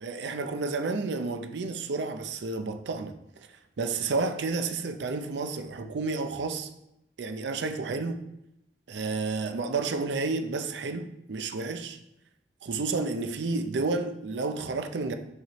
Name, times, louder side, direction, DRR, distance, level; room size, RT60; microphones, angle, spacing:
voice 1, 0.0-3.1 3.8-6.7 7.2-8.2 8.9-12.0 12.6-15.1, right 3 dB, 85° right, 0.5 m, -31 dB
5.8 x 5.5 x 3.0 m
head